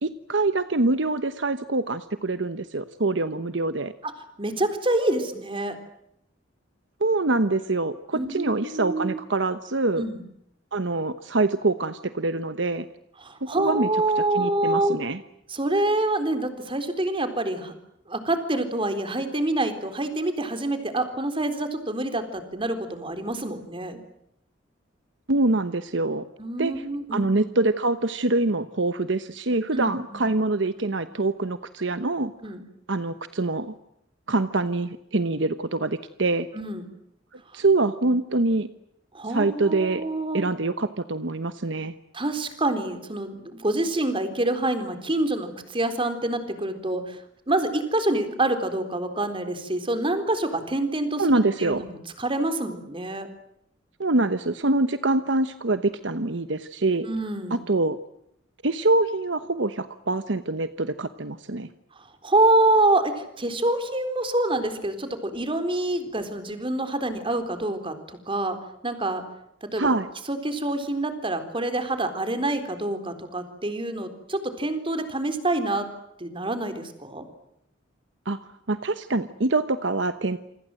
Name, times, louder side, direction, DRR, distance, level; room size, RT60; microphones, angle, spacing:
voice 1, 0.0-3.9 7.0-10.0 10.7-12.9 13.6-13.9 14.2-15.2 25.3-26.3 26.6-26.7 27.1-32.3 32.9-33.7 34.3-36.5 37.5-38.7 39.3-40.0 40.3-41.9 51.2-51.8 54.0-57.1 57.5-58.0 58.6-61.7 69.8-70.1 78.3-78.4 78.7-80.4, right 2 dB, 65° right, 11 dB, 1.1 m, -25 dB
voice 2, 4.4-5.8 8.1-9.2 10.0-10.2 13.2-15.0 15.5-17.7 18.1-24.0 26.4-27.3 29.7-30.3 32.4-32.6 36.5-36.9 39.1-40.5 42.1-47.2 47.5-53.3 57.1-57.6 62.2-68.6 68.8-69.2 69.6-69.9 70.3-75.9 76.2-77.2, right 2 dB, 25° right, 9 dB, 3.9 m, -26 dB
28.0 x 25.5 x 7.8 m, 0.77 s
head